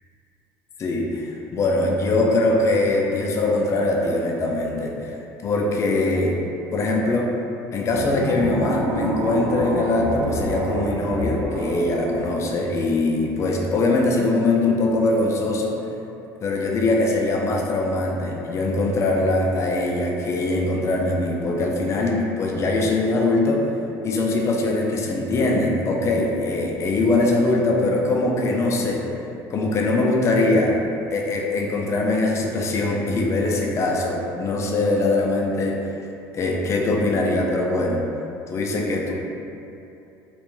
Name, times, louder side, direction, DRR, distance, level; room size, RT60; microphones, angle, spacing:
voice 1, 0.8-5.1 5.4-6.4 6.7-7.3 7.7-15.8 16.4-23.7 24.0-29.0 29.5-30.8 31.1-35.8 36.3-38.0 38.5-39.1, left 2 dB, 35° left, -1 dB, 0.4 m, -22 dB
sound 1, 7.9-13.1, right 2 dB, 60° right, 0.4 m, -28 dB
2.4 x 2.2 x 2.9 m, 2.8 s
supercardioid pair, 110°, 8 cm